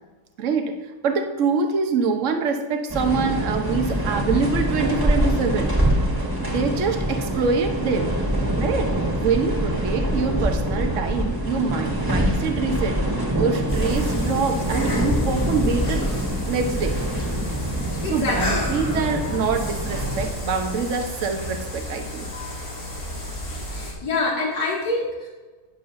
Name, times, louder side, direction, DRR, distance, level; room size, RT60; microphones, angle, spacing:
voice 1, 0.4-0.7 1.0-5.7 6.4-8.1 8.5-8.9 9.2-13.0 13.4-16.1 16.5-17.0 18.0-22.3, right 5 dB, 55° right, 5 dB, 1.2 m, -25 dB
sound 1, 2.9-20.3, equal, 15° right, 1.8 m, -25 dB
sound 2, 13.7-23.9, equal, 55° left, 2.9 m, -32 dB
voice 2, 18.0-18.6 22.3-22.7 23.7-25.3, left 2 dB, 80° left, -3 dB, 2.6 m, -26 dB
19.0 x 7.4 x 2.7 m, 1.3 s
omnidirectional pair, 1.7 m